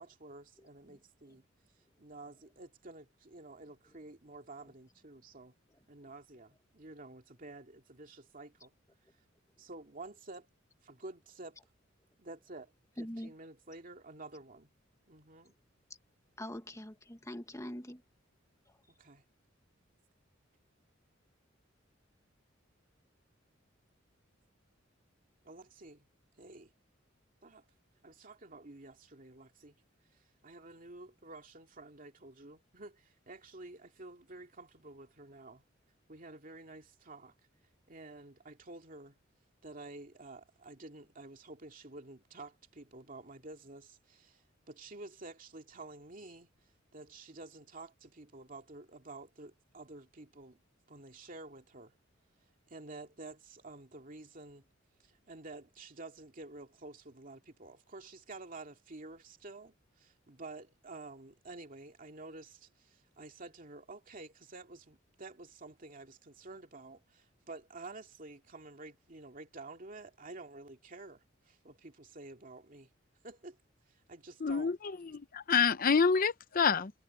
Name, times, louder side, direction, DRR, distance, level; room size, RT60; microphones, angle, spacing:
voice 1, 0.0-1.4 2.0-5.5 5.9-8.7 9.6-10.5 10.8-11.6 12.2-12.7 13.0-14.7 15.1-15.5 19.0-19.2 25.4-26.1 26.4-26.7 27.4-27.6 28.0-29.8 30.4-35.6 36.1-37.3 37.9-39.1 39.6-44.4 44.7-46.5 46.9-50.6 50.9-51.9 52.7-54.6 55.0-72.9 73.2-73.6 74.1-74.7, right 2 dB, 45° right, 2.5 m, -50 dB
voice 2, 13.0-13.3 16.4-18.0, left 1 dB, 15° left, 1.3 m, -43 dB
voice 3, 74.4-76.9, left 5 dB, 45° left, 0.6 m, -28 dB
head